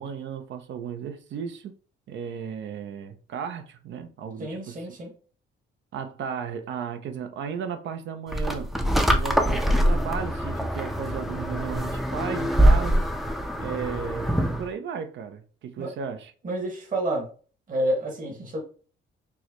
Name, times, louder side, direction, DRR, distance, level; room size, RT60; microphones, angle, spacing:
voice 1, 0.0-1.7 2.1-5.0 5.9-8.7 9.1-13.1 13.6-16.3, right 7 dB, 70° right, 0.6 m, -35 dB
voice 2, 4.4-5.1 15.8-15.9 16.4-17.3 17.7-18.6, right 1 dB, 45° right, 1.5 m, -29 dB
sound 1, 8.3-14.7, equal, ahead, 0.4 m, -23 dB
4.5 x 2.2 x 2.9 m
cardioid pair, 90°, 20 cm